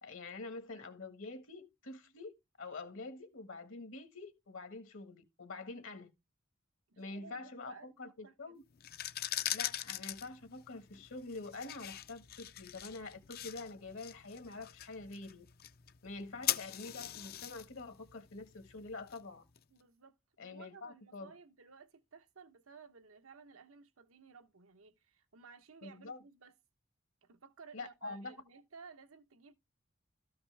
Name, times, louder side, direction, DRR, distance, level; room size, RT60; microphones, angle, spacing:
voice 1, 0.0-6.1 7.0-8.6 9.5-15.5 16.0-19.4 20.4-21.3 25.8-26.2 27.7-28.3, left 3 dB, 70° left, 1.5 m, -46 dB
voice 2, 6.9-8.6 19.7-26.5 27.2-29.5, right 5 dB, 85° right, 0.9 m, -57 dB
sound 1, 8.7-19.6, left 12 dB, 50° left, 0.5 m, -42 dB
13.5 x 5.7 x 3.3 m
head